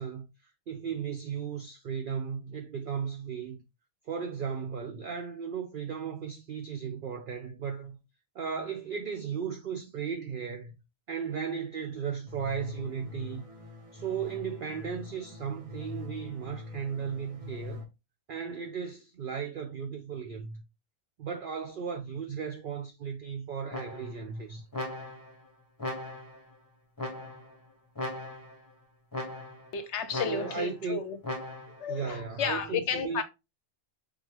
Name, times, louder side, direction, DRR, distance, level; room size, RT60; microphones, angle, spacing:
voice 1, 0.0-3.6 4.0-8.0 8.3-10.7 11.1-13.4 13.9-17.8 18.3-20.6 21.2-24.6 30.2-31.0 31.9-33.2, right 6 dB, 90° right, 0.4 m, -36 dB
sound 1, 12.3-17.8, left 3 dB, 30° right, 0.8 m, -44 dB
sound 2, 23.7-24.3 24.7-25.4 25.8-26.4 27.0-27.6 28.0-28.6 29.1-29.7 30.1-30.7 31.2-31.8, left 1 dB, 15° left, 0.9 m, -38 dB
voice 2, 29.7-31.2 31.8-33.2, left 6 dB, 65° left, 0.8 m, -32 dB
3.5 x 3.3 x 3.0 m
omnidirectional pair, 1.4 m